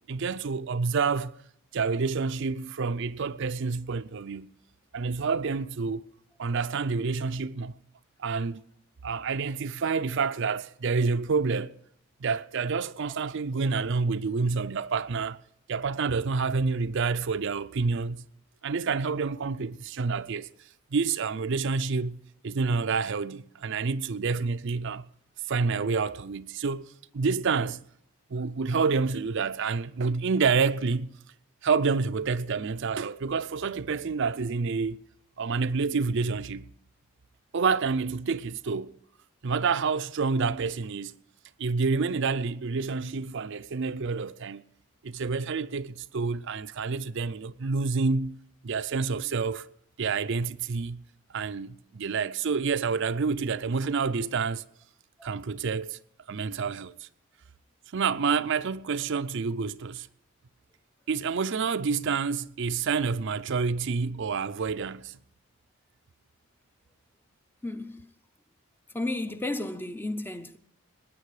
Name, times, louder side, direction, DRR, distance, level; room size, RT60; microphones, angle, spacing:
voice 1, 0.1-1.3 1.7-4.5 4.9-6.0 6.4-7.7 8.2-8.6 9.0-11.7 12.2-15.4 15.7-18.2 18.6-20.5 20.9-25.0 25.5-26.9 27.1-27.8 28.3-31.1 31.6-35.0 35.4-36.7 37.5-38.9 39.4-41.1 41.6-44.6 45.0-48.4 48.6-49.7 50.0-51.0 51.3-54.6 55.2-56.0 56.3-57.1 57.9-60.1 61.1-65.2, right 5 dB, 55° right, 0.5 m, -28 dB
voice 2, 67.6-68.1 68.9-70.6, left 2 dB, 10° left, 0.5 m, -33 dB
20.0 x 9.4 x 4.8 m
head